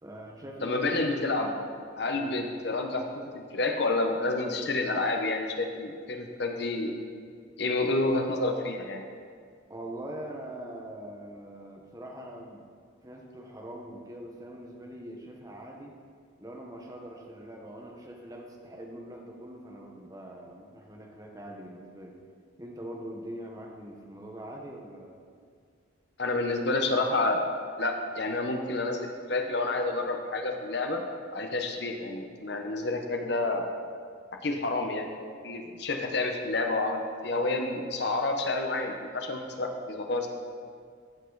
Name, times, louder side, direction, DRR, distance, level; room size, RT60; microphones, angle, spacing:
voice 1, 0.0-1.1 2.1-2.5 9.7-12.6 13.0-15.9 16.4-22.1 22.6-25.2 34.5-34.7, right 1 dB, 20° right, 0 dB, 1.0 m, -43 dB
voice 2, 0.6-1.5 2.0-3.1 3.3-6.9 7.6-9.1 26.2-27.5 27.8-31.0 31.3-33.6 34.4-35.1 35.4-40.3, left 2 dB, 60° left, 3 dB, 1.0 m, -29 dB
14.5 x 5.5 x 4.0 m, 2.1 s
head